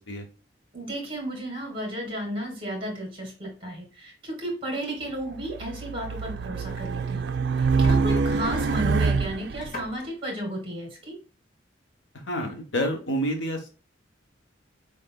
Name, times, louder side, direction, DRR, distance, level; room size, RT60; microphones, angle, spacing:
voice 1, 0.7-7.3 7.6-11.2, right 1 dB, 30° right, -1 dB, 2.5 m, -33 dB
Race car auto racing, 5.3-9.7, right 4 dB, 60° right, 0.4 m, -25 dB
sound 1, 6.2-7.1 7.5-10.0, left 1 dB, 40° left, 1.7 m, -41 dB
voice 2, 12.3-13.7, equal, 75° left, 4 dB, 1.2 m, -28 dB
5.2 x 3.9 x 2.3 m, 0.35 s
head